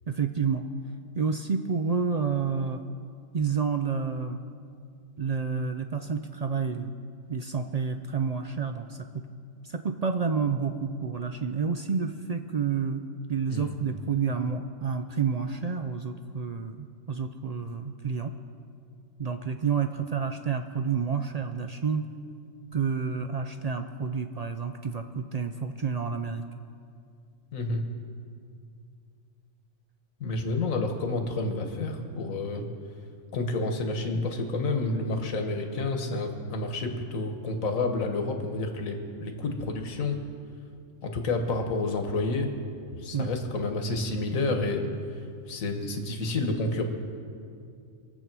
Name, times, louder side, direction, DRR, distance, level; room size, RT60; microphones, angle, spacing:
voice 1, 0.1-0.6 1.1-2.8 3.3-4.4 5.2-6.9 7.3-9.2 9.6-18.3 19.2-22.1 22.7-26.4 43.1-43.3, right 5 dB, 70° right, 7 dB, 0.3 m, -29 dB
voice 2, 27.5-27.8 30.2-32.6 33.3-40.2 41.0-42.5 43.0-44.9 45.5-46.8, left 2 dB, 80° left, 5 dB, 1.7 m, -29 dB
23.0 x 8.2 x 6.0 m, 2.4 s
omnidirectional pair, 1.4 m